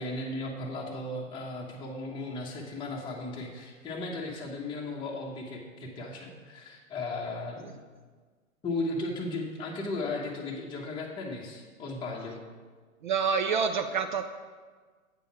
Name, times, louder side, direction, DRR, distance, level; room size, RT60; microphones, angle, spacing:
voice 1, 0.0-7.7 8.6-12.4, left 2 dB, 10° left, -4 dB, 1.0 m, -36 dB
voice 2, 13.0-14.3, right 6 dB, 40° right, 8 dB, 0.4 m, -27 dB
8.4 x 5.4 x 5.9 m, 1.5 s
figure-of-eight pair, 110°, 41 cm